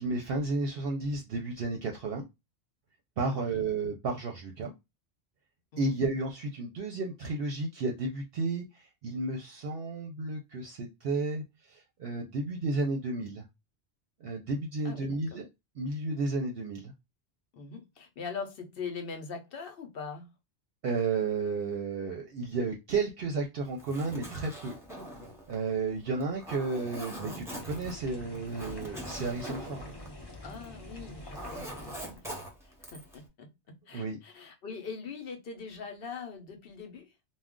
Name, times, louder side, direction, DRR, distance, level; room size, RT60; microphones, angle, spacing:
voice 1, 0.0-2.3 3.2-4.7 5.8-13.4 14.2-15.5 15.8-16.9 20.8-24.8 25.5-29.9 33.9-34.2, right 3 dB, 65° right, 0.7 m, -32 dB
voice 2, 3.3-3.6 5.7-5.9 14.8-15.4 17.5-20.3 30.4-32.5 32.8-37.1, left 5 dB, 60° left, 0.8 m, -42 dB
Zipper (clothing), 23.7-30.8 31.1-33.2, right 1 dB, 5° right, 0.7 m, -43 dB
sound 1, 27.6-32.2, left 1 dB, 35° left, 0.4 m, -46 dB
2.3 x 2.1 x 3.6 m
omnidirectional pair, 1.2 m